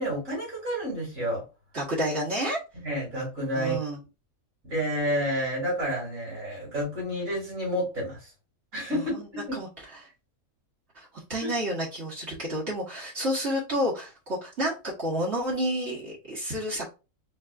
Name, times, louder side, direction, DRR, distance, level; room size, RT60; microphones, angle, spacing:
voice 1, 0.0-1.4 2.8-3.8 4.6-8.3 8.7-9.6 11.4-11.5, equal, 80° right, -5 dB, 3.3 m, -30 dB
voice 2, 1.7-2.6 3.5-4.0 8.9-9.2 9.5-9.7 10.9-17.0, equal, 55° right, -5 dB, 1.6 m, -30 dB
4.7 x 4.0 x 2.4 m, 0.29 s
omnidirectional pair, 1.4 m